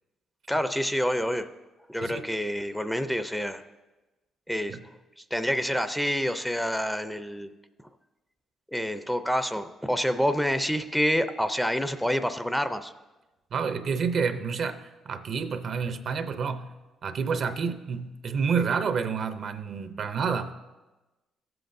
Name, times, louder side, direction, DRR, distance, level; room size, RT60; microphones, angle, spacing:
voice 1, 0.5-1.5 1.9-3.6 4.5-4.8 5.2-7.5 8.7-12.9, equal, 5° left, 10 dB, 0.5 m, -27 dB
voice 2, 13.5-16.8 17.0-20.5, right 5 dB, 60° right, 10 dB, 0.6 m, -29 dB
14.5 x 7.7 x 2.6 m, 1.1 s
cardioid pair, 90°, 0 cm